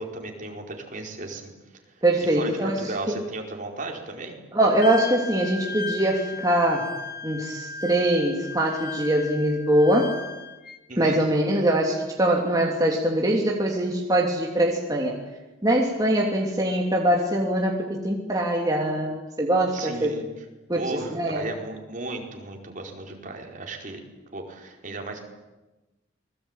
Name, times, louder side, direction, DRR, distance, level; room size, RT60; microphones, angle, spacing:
voice 1, 0.0-1.5 1.9-4.4 10.9-11.2 19.7-20.4 20.7-24.0 24.3-25.2, right 2 dB, 45° right, 1 dB, 4.8 m, -35 dB
voice 2, 2.0-2.9 4.5-6.9 7.2-10.1 11.0-15.2 15.6-20.2 20.7-20.8 21.1-21.5, right 1 dB, 20° right, -1 dB, 3.0 m, -23 dB
Wind instrument woodwind instrument, 4.8-10.8, left 3 dB, 55° left, 2.2 m, -36 dB
29.0 x 21.5 x 9.1 m, 1.1 s
head